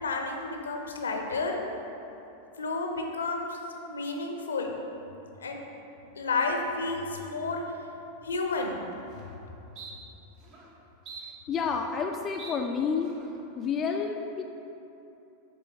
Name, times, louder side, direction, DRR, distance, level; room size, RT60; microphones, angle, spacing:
voice 1, 0.0-1.6 2.6-4.8 5.4-5.6 6.1-7.6 8.2-8.8, left 3 dB, 70° left, 3 dB, 0.6 m, -31 dB
sound 1, 8.6-8.7 9.1-9.4 9.8-9.9 10.4-10.7 11.1-12.1 12.4-12.6 13.0-13.4, right 4 dB, 40° right, 0.8 m, -46 dB
voice 2, 11.2-13.1 13.6-14.4, left 6 dB, 25° left, 3 dB, 0.3 m, -30 dB
7.3 x 3.7 x 4.0 m, 2.9 s
figure-of-eight pair, 90°, 0 cm